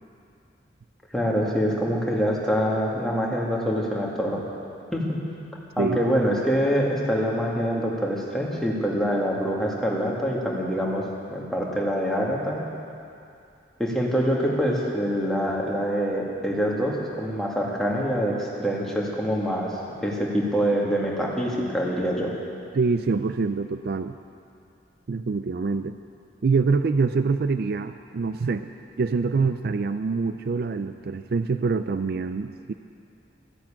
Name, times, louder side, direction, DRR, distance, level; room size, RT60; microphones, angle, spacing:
voice 1, 1.1-4.4 4.9-5.2 5.8-12.6 13.8-22.3, equal, 5° left, -4 dB, 2.1 m, -25 dB
voice 2, 22.7-24.1 25.1-26.0 26.4-28.7 29.0-32.7, right 4 dB, 55° right, 10 dB, 0.4 m, -25 dB
14.5 x 10.5 x 8.7 m, 2.5 s
head